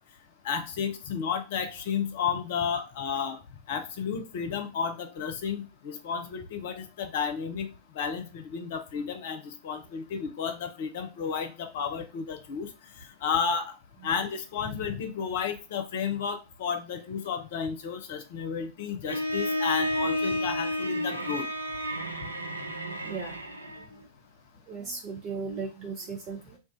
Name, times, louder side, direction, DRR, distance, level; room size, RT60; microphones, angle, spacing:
voice 1, 0.4-3.4 3.7-7.7 8.0-12.7 13.2-13.7 14.0-21.5, left 6 dB, 55° left, 7 dB, 0.7 m, -32 dB
Bowed string instrument, 19.1-23.9, equal, 85° right, 0.5 m, -31 dB
voice 2, 22.9-23.4 23.8-23.9 24.7-26.6, right 4 dB, 30° right, 0 dB, 0.8 m, -37 dB
2.5 x 2.4 x 3.8 m, 0.29 s
figure-of-eight pair, 90°, 0 cm